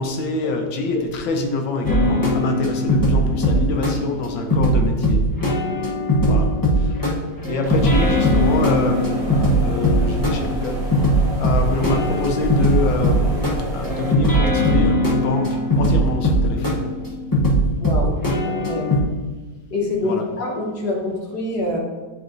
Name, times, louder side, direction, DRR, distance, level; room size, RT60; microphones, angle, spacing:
voice 1, 0.0-5.3 6.3-6.5 6.8-7.0 7.5-10.9 11.4-16.9 20.0-20.3, left 3 dB, 80° left, 3 dB, 1.6 m, -25 dB
sound 1, 1.8-19.0, equal, 25° left, 0.4 m, -20 dB
sound 2, 7.6-14.1, right 2 dB, 40° right, 1.3 m, -29 dB
voice 2, 17.8-18.1 18.4-18.9 19.7-21.8, left 2 dB, 60° left, -1 dB, 1.6 m, -25 dB
10.0 x 4.3 x 2.6 m, 1.3 s
omnidirectional pair, 2.1 m